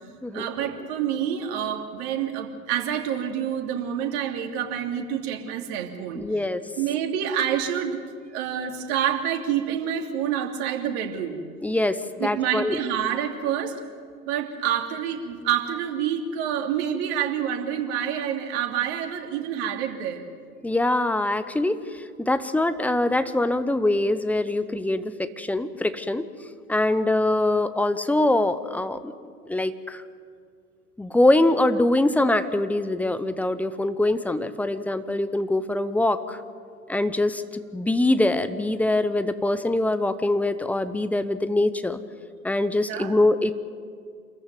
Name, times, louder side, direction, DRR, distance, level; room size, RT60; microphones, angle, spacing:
voice 1, 0.3-6.2 6.8-8.0 8.3-11.4 12.2-13.8 14.3-20.2 42.8-43.2, right 9 dB, 45° right, 4 dB, 2.9 m, -27 dB
voice 2, 6.2-6.6 11.6-12.8 20.6-26.2 26.7-29.1 29.5-30.0 31.0-36.4 36.9-37.4 37.7-42.0 42.4-43.5, left 2 dB, 5° left, 11 dB, 0.6 m, -23 dB
27.0 x 14.5 x 9.3 m, 2.1 s
figure-of-eight pair, 95°, 45 cm